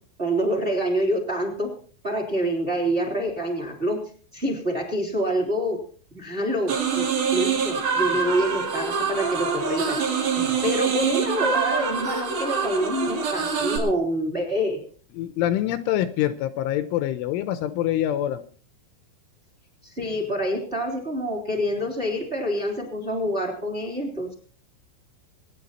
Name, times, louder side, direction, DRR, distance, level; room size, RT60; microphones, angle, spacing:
voice 1, 0.2-1.7 2.0-4.0 4.3-5.8 6.1-7.1 7.3-10.0 10.6-14.8 19.8-24.3, equal, 15° right, 2 dB, 2.9 m, -26 dB
sound 1, 6.7-13.8, right 6 dB, 55° right, 4.0 m, -25 dB
voice 2, 10.4-10.7 15.1-18.4, left 12 dB, 80° left, 12 dB, 3.2 m, -25 dB
24.5 x 10.0 x 4.2 m, 0.42 s
omnidirectional pair, 5.7 m